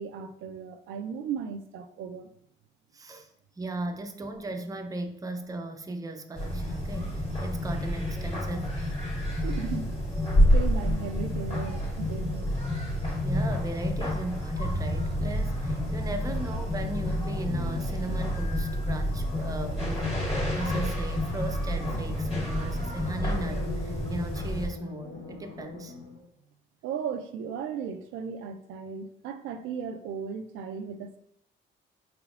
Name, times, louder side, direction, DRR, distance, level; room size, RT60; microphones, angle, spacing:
voice 1, 0.0-2.3 9.4-10.1 10.5-12.6 26.8-31.2, right 6 dB, 90° right, 7 dB, 0.4 m, -36 dB
voice 2, 2.9-3.3 3.6-8.7 13.2-25.9, right 2 dB, 20° right, 6 dB, 0.5 m, -37 dB
sound 1, 6.3-24.7, equal, 30° left, 1.4 m, -29 dB
sound 2, 16.7-26.3, left 4 dB, 80° left, 0.9 m, -44 dB
4.5 x 3.4 x 2.4 m, 0.75 s
cardioid pair, 90°, 20 cm